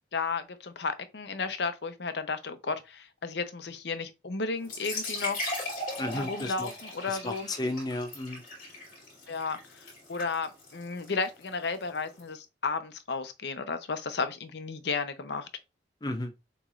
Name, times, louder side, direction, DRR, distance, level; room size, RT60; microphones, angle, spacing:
voice 1, 0.0-5.4 6.1-7.5 9.3-15.5, left 4 dB, 65° left, 0.7 m, -33 dB
sound 1, 4.6-12.2, left 1 dB, 45° left, 2.7 m, -39 dB
voice 2, 6.0-6.7 7.2-8.4 16.0-16.3, left 1 dB, 20° left, 0.5 m, -33 dB
6.9 x 3.0 x 2.4 m
head